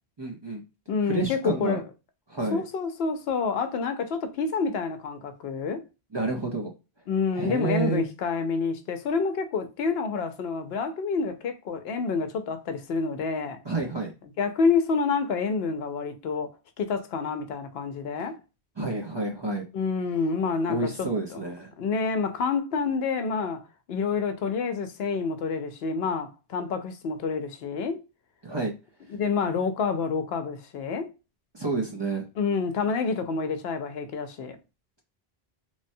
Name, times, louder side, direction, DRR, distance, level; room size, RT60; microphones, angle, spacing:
voice 1, 0.2-0.6 1.0-1.8 2.3-2.6 6.1-6.7 7.3-8.1 13.6-14.1 18.8-19.6 20.7-21.7 28.4-28.7 31.5-32.3, right 3 dB, 30° right, 0.5 m, -29 dB
voice 2, 0.9-1.8 2.5-5.8 7.1-13.6 14.4-16.5 16.8-18.4 19.7-21.4 21.8-23.6 23.9-28.0 29.1-31.1 32.4-34.6, left 5 dB, 80° left, 0.8 m, -28 dB
3.1 x 2.1 x 2.6 m
omnidirectional pair, 1.0 m